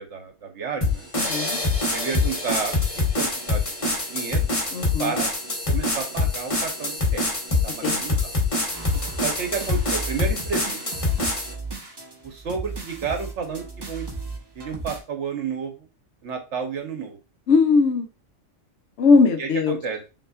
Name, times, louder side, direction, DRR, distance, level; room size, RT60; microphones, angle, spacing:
voice 1, 0.0-1.1 1.9-4.5 5.0-5.3 5.7-7.2 7.6-8.3 9.2-10.8 12.2-14.1 14.5-15.9 16.2-17.2 19.4-20.0, right 6 dB, 65° right, 4 dB, 1.1 m, -31 dB
sound 1, 0.8-11.5, left 3 dB, 25° left, 1.2 m, -25 dB
voice 2, 1.2-1.6 4.7-5.1 7.8-8.0 17.5-18.1 19.0-19.8, left 4 dB, 70° left, 6 dB, 0.9 m, -19 dB
sound 2, 8.7-15.0, right 3 dB, 25° right, 0.6 m, -36 dB
5.3 x 2.8 x 2.4 m, 0.30 s
omnidirectional pair, 1.3 m